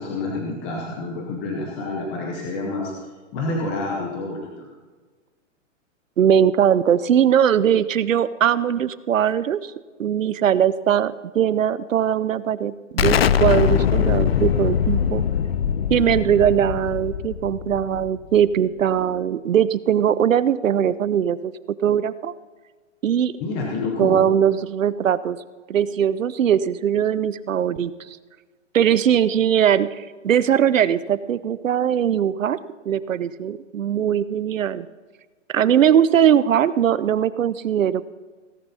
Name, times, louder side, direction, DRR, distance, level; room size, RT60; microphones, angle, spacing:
voice 1, 0.0-2.9 3.3-4.7 23.4-24.2, left 3 dB, 10° left, -2 dB, 0.7 m, -28 dB
voice 2, 6.2-9.7 10.0-15.2 15.9-21.5 21.8-22.3 23.0-23.3 24.0-25.4 25.7-27.9 28.7-32.6 32.8-34.9 35.5-38.1, right 9 dB, 90° right, 16 dB, 0.8 m, -20 dB
Explosion, 13.0-18.4, left 9 dB, 50° left, 0.6 m, -22 dB
17.0 x 10.5 x 4.2 m, 1.3 s
hypercardioid pair, 170°, 38 cm